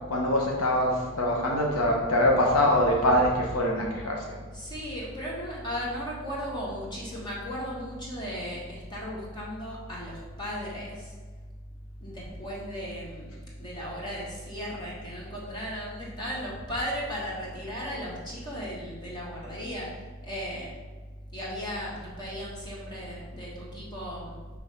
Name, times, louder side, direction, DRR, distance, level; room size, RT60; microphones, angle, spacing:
voice 1, 0.1-4.3, left 1 dB, 85° left, -1 dB, 0.9 m, -24 dB
voice 2, 2.5-3.1 3.5-3.6 4.5-11.1 12.0-19.9 20.2-20.7 21.3-24.4, equal, 20° left, -5 dB, 1.3 m, -36 dB
5.7 x 3.2 x 5.4 m, 1.4 s
head